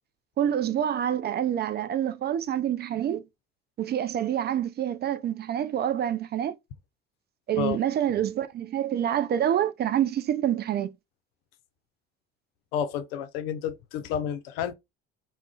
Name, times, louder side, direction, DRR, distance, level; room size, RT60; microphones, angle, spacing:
voice 1, 0.4-3.2 3.8-6.5 7.5-10.9, right 10 dB, 35° right, 0.4 m, -27 dB
voice 2, 12.7-14.7, left 9 dB, 70° left, 0.5 m, -30 dB
2.3 x 2.1 x 3.6 m
hypercardioid pair, 55°, 30 cm